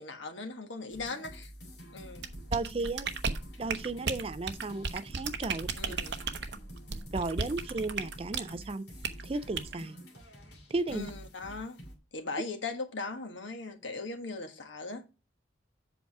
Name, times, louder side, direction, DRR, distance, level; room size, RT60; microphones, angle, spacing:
voice 1, 0.0-1.5 1.9-2.3 5.7-6.2 10.9-11.8 12.1-15.0, left 3 dB, 80° left, 1.4 m, -39 dB
sound 1, 0.9-12.0, equal, 60° left, 2.5 m, -48 dB
sound 2, 2.2-8.5 9.0-9.2 9.6-9.8, right 5 dB, 70° right, 0.8 m, -34 dB
voice 2, 2.5-3.1 3.6-6.0 7.1-8.8 9.2-10.0 10.7-11.0, right 3 dB, 30° right, 0.4 m, -34 dB
7.9 x 4.7 x 4.6 m
head